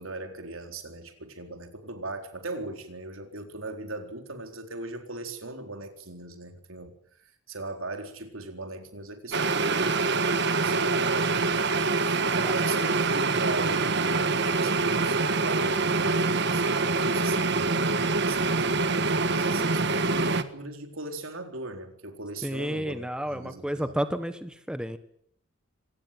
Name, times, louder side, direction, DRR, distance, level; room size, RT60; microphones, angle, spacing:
voice 1, 0.0-6.9 7.2-11.7 12.0-24.0, right 2 dB, 80° right, 6 dB, 4.1 m, -39 dB
sound 1, 9.3-20.4, right 3 dB, 55° right, 1.6 m, -25 dB
voice 2, 22.4-25.0, equal, 5° right, 10 dB, 1.4 m, -31 dB
25.5 x 19.5 x 9.3 m, 0.70 s
head